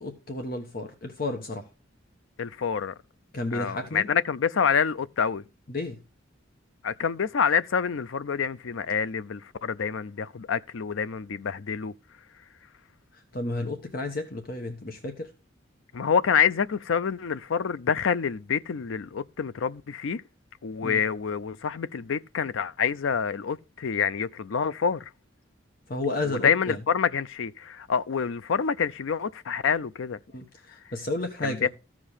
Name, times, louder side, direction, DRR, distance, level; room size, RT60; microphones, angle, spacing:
voice 1, 0.0-1.7 3.3-4.1 5.7-6.0 13.1-15.3 20.8-21.0 25.9-26.8 30.3-31.7, left 2 dB, 45° left, 1.2 m, -32 dB
voice 2, 2.4-2.9 3.5-5.4 6.8-11.9 15.9-20.2 20.6-25.1 26.3-30.2 31.4-31.7, left 6 dB, 80° left, 0.5 m, -27 dB
14.0 x 5.1 x 5.5 m
head